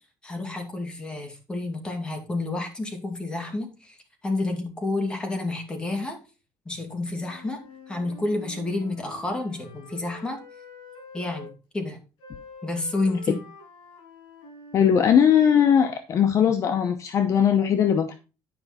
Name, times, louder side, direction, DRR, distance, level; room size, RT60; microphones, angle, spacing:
voice 1, 0.2-4.0 4.2-6.2 6.7-7.6 7.9-10.4 11.1-12.0 12.6-13.4, left 2 dB, 10° left, 3 dB, 2.3 m, -30 dB
Wind instrument woodwind instrument, 7.1-11.5 12.2-15.9, left 4 dB, 70° left, 6.0 m, -47 dB
voice 2, 14.7-18.1, left 8 dB, 40° left, 7 dB, 0.8 m, -19 dB
10.5 x 5.4 x 4.2 m, 0.31 s
cardioid pair, 145°, 8 cm